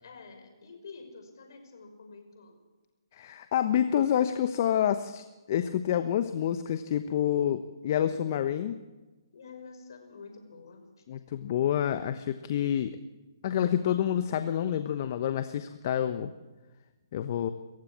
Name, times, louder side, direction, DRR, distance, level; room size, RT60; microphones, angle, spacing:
voice 1, 0.0-2.6 9.3-11.0, left 4 dB, 60° left, 5 dB, 5.7 m, -48 dB
voice 2, 3.1-8.7 11.1-13.0 13.4-16.3 17.1-17.5, left 10 dB, 45° left, 10 dB, 1.0 m, -28 dB
26.5 x 15.5 x 7.4 m, 1.2 s
figure-of-eight pair, 140°, 2 cm